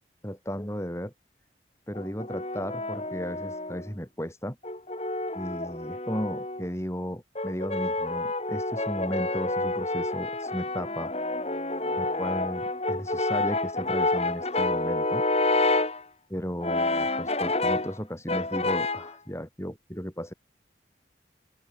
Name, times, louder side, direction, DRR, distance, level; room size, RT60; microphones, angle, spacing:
voice 1, 0.2-1.1 1.9-4.6 5.3-11.1 12.0-15.3 16.3-20.3, equal, 15° left, 7.3 m, -35 dB
Brass instrument, 1.9-3.9 4.6-6.7 7.4-16.0 16.6-18.0 18.3-19.1, left 2 dB, 35° left, 7.2 m, -28 dB
open air
head